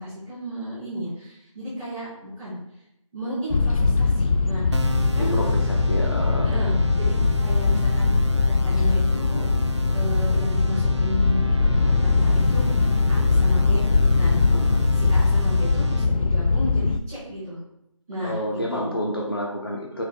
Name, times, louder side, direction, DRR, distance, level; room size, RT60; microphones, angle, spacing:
voice 1, 0.0-2.5 3.1-4.8 5.1-5.4 6.4-9.5 9.9-13.8 14.1-14.5 14.9-17.6 18.1-18.9, equal, 5° right, -17 dB, 1.6 m, -33 dB
sound 1, 3.5-17.0, left 3 dB, 85° left, 0.4 m, -21 dB
sound 2, 4.7-16.1, right 4 dB, 55° right, 0.5 m, -36 dB
voice 2, 5.9-6.5 14.5-14.9 18.2-20.0, left 1 dB, 45° left, -1 dB, 0.8 m, -29 dB
6.8 x 6.3 x 2.2 m, 0.83 s
figure-of-eight pair, 180°, 17 cm